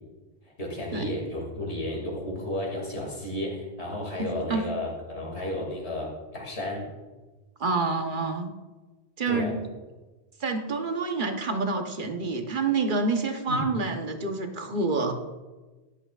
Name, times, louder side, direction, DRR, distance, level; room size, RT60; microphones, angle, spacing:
voice 1, 0.4-6.9 9.3-9.6 13.5-13.6, left 1 dB, 80° left, -1 dB, 2.8 m, -33 dB
voice 2, 4.2-4.6 7.6-8.5 9.2-9.6 10.4-15.1, right 3 dB, 50° right, 5 dB, 1.1 m, -28 dB
13.0 x 10.5 x 2.4 m, 1.2 s
omnidirectional pair, 1.1 m